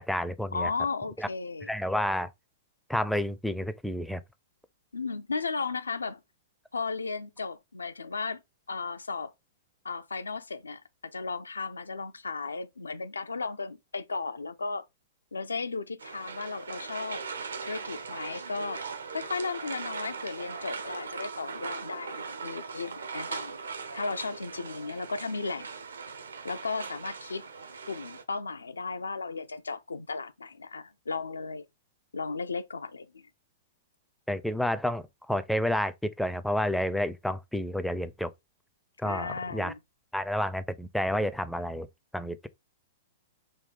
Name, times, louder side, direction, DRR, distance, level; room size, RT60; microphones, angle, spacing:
voice 1, 0.0-0.7 1.2-1.3 1.7-2.3 2.9-4.2 34.3-38.3 39.0-39.7 40.1-41.9 42.1-42.5, equal, ahead, 0.4 m, -30 dB
voice 2, 0.5-1.7 4.9-6.2 6.7-8.4 8.7-9.3 9.8-10.8 11.1-14.8 15.3-17.2 17.6-18.8 19.1-23.5 23.9-25.7 26.4-27.4 27.9-31.6 32.1-33.3 39.0-39.8, left 4 dB, 80° left, 0.5 m, -35 dB
sound 1, 16.0-28.2, right 5 dB, 75° right, 0.7 m, -39 dB
3.6 x 2.8 x 3.8 m
figure-of-eight pair, 110°, 0 cm